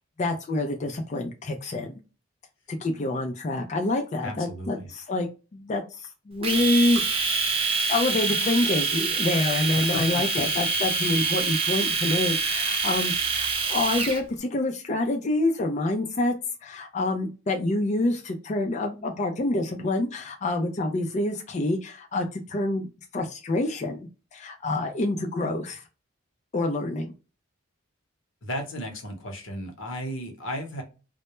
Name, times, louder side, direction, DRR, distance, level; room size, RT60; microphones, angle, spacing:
voice 1, 0.2-2.0 2.7-6.0 6.3-7.0 7.9-16.3 16.6-22.9 23.1-25.8 26.5-27.1, left 2 dB, 35° left, 3 dB, 0.3 m, -27 dB
voice 2, 4.2-4.9 9.7-10.2 28.4-30.8, equal, 70° left, 3 dB, 0.8 m, -34 dB
Domestic sounds home sounds, 6.4-14.2, right 4 dB, 25° right, 0.4 m, -26 dB
2.1 x 2.1 x 2.9 m, 0.32 s
head